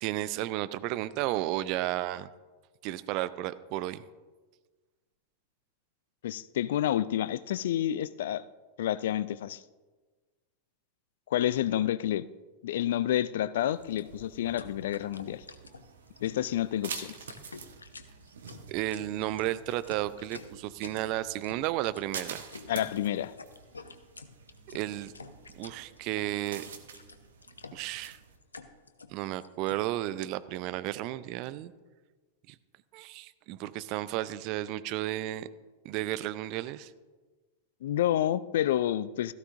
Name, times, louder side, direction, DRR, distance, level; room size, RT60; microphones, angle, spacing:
voice 1, 0.0-2.3 2.8-4.0 18.7-22.4 24.7-25.1 25.6-26.6 27.7-28.2 29.1-31.7 32.9-35.5 35.8-36.9, right 15 dB, 45° right, 15 dB, 0.5 m, -33 dB
voice 2, 6.2-8.5 8.8-9.6 11.3-12.3 12.6-15.4 16.2-17.2 22.7-23.3 37.8-39.3, left 12 dB, 55° left, 17 dB, 0.4 m, -29 dB
sound 1, 13.7-28.4, right 6 dB, 65° right, 1.2 m, -47 dB
sound 2, 13.8-29.8, left 4 dB, 75° left, 0.8 m, -49 dB
16.5 x 14.5 x 2.6 m, 1.3 s
figure-of-eight pair, 90°, 0 cm